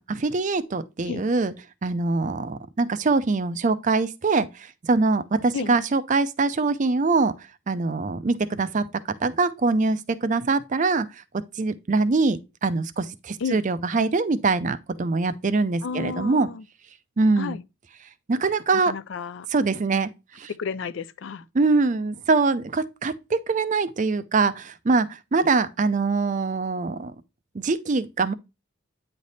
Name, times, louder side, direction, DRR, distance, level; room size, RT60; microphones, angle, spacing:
voice 1, 0.0-1.5 1.8-7.3 7.7-8.9 9.2-11.1 11.6-16.5 17.2-17.6 18.3-18.9 19.5-20.1 20.3-20.5 21.5-27.1 27.5-28.3, right 3 dB, 35° right, 0.5 m, -23 dB
voice 2, 15.8-16.6 17.4-17.6 18.7-19.5 20.6-21.5, left 5 dB, 60° left, 0.4 m, -32 dB
9.1 x 3.3 x 4.0 m
head